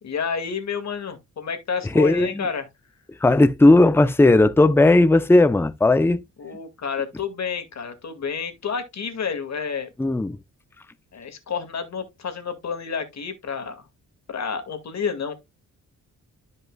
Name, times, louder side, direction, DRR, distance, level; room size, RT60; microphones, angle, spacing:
voice 1, 0.0-2.7 6.4-9.9 11.1-13.9 14.3-15.3, left 6 dB, 55° left, 2.1 m, -30 dB
voice 2, 1.9-2.5 3.2-6.2 10.0-10.4, left 2 dB, 5° left, 0.6 m, -16 dB
13.0 x 5.3 x 2.3 m
cardioid pair, 110°, 31 cm